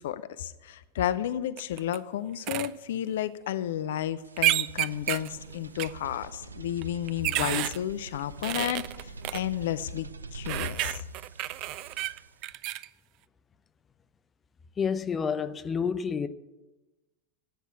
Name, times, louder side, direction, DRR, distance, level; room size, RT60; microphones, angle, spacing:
voice 1, 0.0-11.0, left 11 dB, 55° left, 0.6 m, -32 dB
sound 1, 1.6-2.0 2.5-2.7 4.4-5.3 5.8-5.9 6.8-7.8 8.4-9.4 10.5-12.9, right 16 dB, 40° right, 0.5 m, -30 dB
sound 2, 4.2-12.5, right 4 dB, 75° right, 0.7 m, -45 dB
voice 2, 14.8-16.3, left 6 dB, 20° left, 0.7 m, -29 dB
15.0 x 9.3 x 8.6 m
figure-of-eight pair, 90°, 0 cm